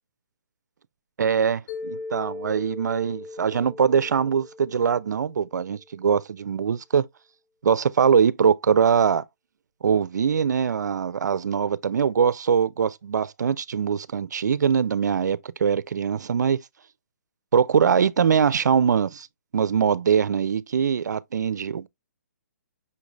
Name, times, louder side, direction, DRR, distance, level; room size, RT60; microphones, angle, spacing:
voice 1, 1.2-7.1 7.6-9.2 9.8-16.6 17.5-19.3 19.5-21.9, right 7 dB, 85° right, 0.4 m, -22 dB
Mallet percussion, 1.7-5.8, left 3 dB, 35° left, 2.0 m, -39 dB
5.7 x 2.4 x 3.1 m
hypercardioid pair, 165°, 9 cm